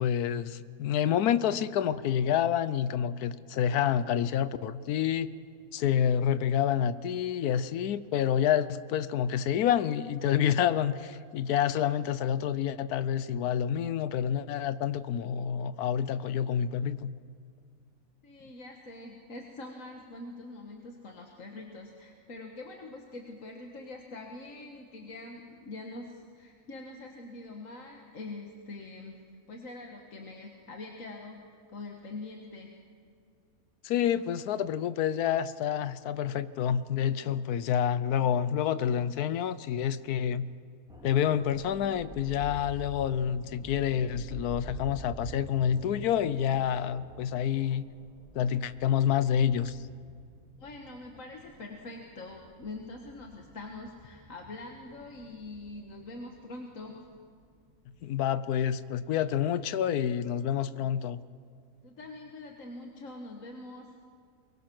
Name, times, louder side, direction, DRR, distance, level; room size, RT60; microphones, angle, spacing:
voice 1, 0.0-5.3 5.7-17.1 33.8-40.5 41.0-47.8 48.3-49.8 58.0-61.2, left 9 dB, 90° left, 14 dB, 1.2 m, -28 dB
voice 2, 18.2-29.2 29.5-31.4 31.7-32.7 50.6-57.0 61.8-63.9, left 2 dB, 60° left, 2 dB, 1.8 m, -44 dB
sound 1, 40.9-58.8 59.1-59.3, right 1 dB, 5° right, 2.9 m, -48 dB
24.0 x 22.0 x 6.1 m, 2.2 s
omnidirectional pair, 1.6 m